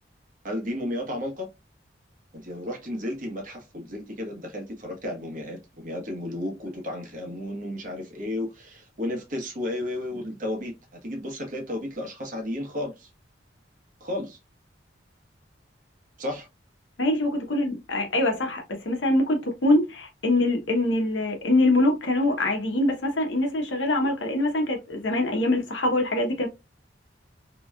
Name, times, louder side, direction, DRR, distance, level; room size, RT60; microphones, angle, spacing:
voice 1, 0.4-1.5 2.3-10.7 11.0-13.1 14.0-14.4 16.2-16.5, left 1 dB, 45° right, 1.1 m, -33 dB
voice 2, 17.0-26.5, left 1 dB, 85° left, 0.9 m, -24 dB
2.9 x 2.9 x 2.3 m
head